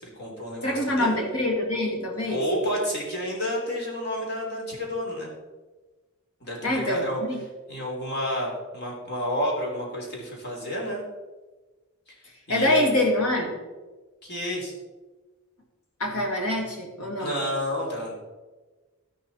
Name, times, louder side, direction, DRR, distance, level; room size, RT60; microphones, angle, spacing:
voice 1, 0.0-1.4 2.3-5.3 6.4-7.2 7.7-11.0 12.1-12.2 12.5-12.9 14.2-14.7 17.2-18.1, equal, 50° left, -1 dB, 3.4 m, -30 dB
voice 2, 0.6-2.4 6.6-7.0 12.5-13.5 16.0-17.3, left 1 dB, 85° left, 1 dB, 2.9 m, -25 dB
12.0 x 11.0 x 4.3 m, 1.3 s
head